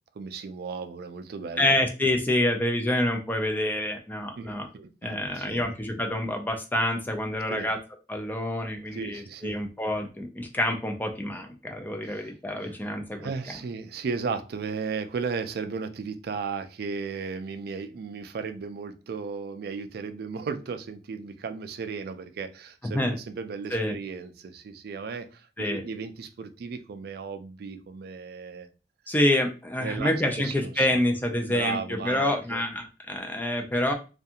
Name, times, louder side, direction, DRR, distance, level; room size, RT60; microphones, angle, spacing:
voice 1, 0.2-1.7 4.4-5.6 7.5-7.7 8.9-9.6 12.0-12.3 12.6-12.8 13.2-28.7 29.8-30.1 30.4-31.0 31.5-32.6, right 5 dB, 60° right, 9 dB, 0.3 m, -35 dB
voice 2, 1.6-4.7 5.0-7.8 8.1-13.3 22.8-23.1 23.7-24.0 25.6-25.8 29.1-33.9, left 1 dB, 10° left, 4 dB, 0.4 m, -27 dB
2.5 x 2.3 x 2.7 m, 0.32 s
head